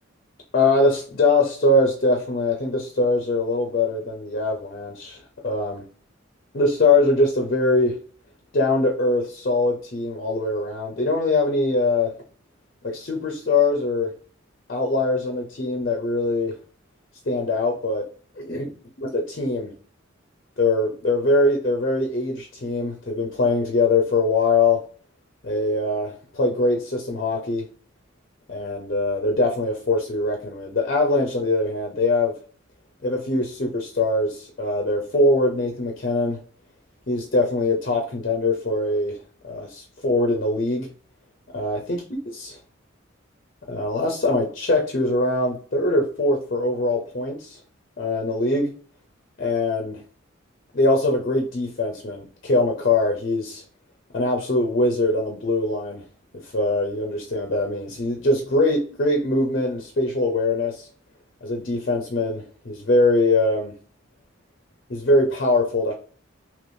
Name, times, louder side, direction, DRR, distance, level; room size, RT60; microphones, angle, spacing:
voice 1, 0.5-5.8 6.5-8.0 8.5-12.1 12.8-14.1 14.7-16.5 17.3-18.1 18.4-18.7 19.0-19.7 20.6-24.8 25.4-27.6 28.5-32.3 33.0-36.4 37.1-39.2 39.5-40.9 41.5-42.0 42.4-42.6 43.7-47.6 48.0-48.7 49.4-50.0 50.7-53.6 54.1-56.0 56.5-60.9 61.4-63.7 64.9-65.9, left 2 dB, 45° left, 1 dB, 0.6 m, -22 dB
3.4 x 3.0 x 2.6 m, 0.43 s
head